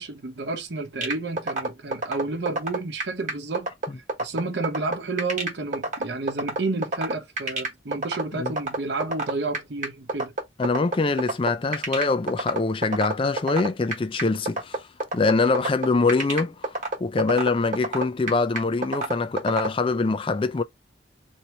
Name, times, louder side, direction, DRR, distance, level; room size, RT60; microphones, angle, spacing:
voice 1, 0.0-3.7 4.2-10.3, right 3 dB, 60° right, 0.8 m, -30 dB
sound 1, 1.0-19.7, right 2 dB, 40° right, 1.3 m, -26 dB
voice 2, 10.6-14.9 15.1-20.6, left 3 dB, 25° left, 0.4 m, -24 dB
2.9 x 2.7 x 4.4 m
head